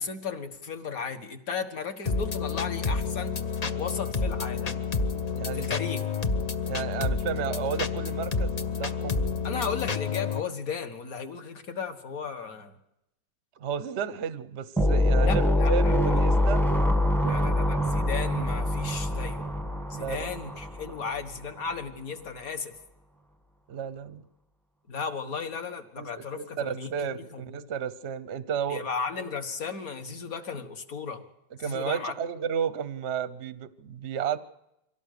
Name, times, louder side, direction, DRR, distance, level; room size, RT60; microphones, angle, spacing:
voice 1, 0.0-3.3 3.8-4.8 5.5-6.0 9.4-12.7 15.2-16.2 17.2-19.4 19.9-22.7 24.9-27.4 28.7-31.2 31.6-32.1, left 5 dB, 50° left, 7 dB, 1.8 m, -35 dB
sound 1, 2.1-10.4, left 5 dB, 65° left, 0.4 m, -29 dB
voice 2, 5.3-5.7 6.7-9.4 13.6-16.6 17.2-17.5 19.9-20.3 23.7-24.2 26.0-28.8 31.6-34.4, right 7 dB, 50° right, 14 dB, 0.8 m, -33 dB
sound 2, 14.8-21.2, left 1 dB, ahead, 0.9 m, -24 dB
24.5 x 17.0 x 6.6 m, 0.85 s
omnidirectional pair, 2.1 m